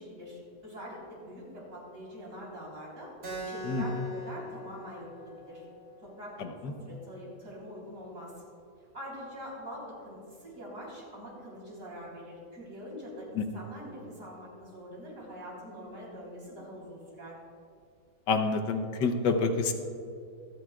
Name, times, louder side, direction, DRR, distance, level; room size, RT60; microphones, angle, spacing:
voice 1, 0.0-3.1 3.4-5.6 6.0-8.3 8.9-17.3, equal, 50° right, -4 dB, 4.0 m, -44 dB
Keyboard (musical), 3.2-8.3, left 1 dB, 65° right, 3.6 m, -43 dB
voice 2, 6.4-6.7 13.4-13.5 18.3-19.7, left 4 dB, 85° left, 6 dB, 1.5 m, -28 dB
25.5 x 9.4 x 2.4 m, 2.4 s
omnidirectional pair, 1.9 m